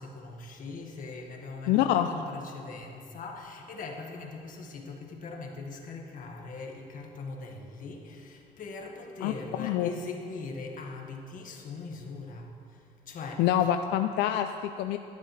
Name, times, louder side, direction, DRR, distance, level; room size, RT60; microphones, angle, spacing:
voice 1, 0.0-12.8 13.1-13.4, left 3 dB, 55° left, 1 dB, 1.8 m, -41 dB
voice 2, 1.7-2.1 9.2-9.3 9.6-9.9 13.4-15.0, left 11 dB, 90° left, 7 dB, 0.5 m, -26 dB
18.0 x 11.5 x 3.3 m, 2.5 s
cardioid pair, 110°, 17 cm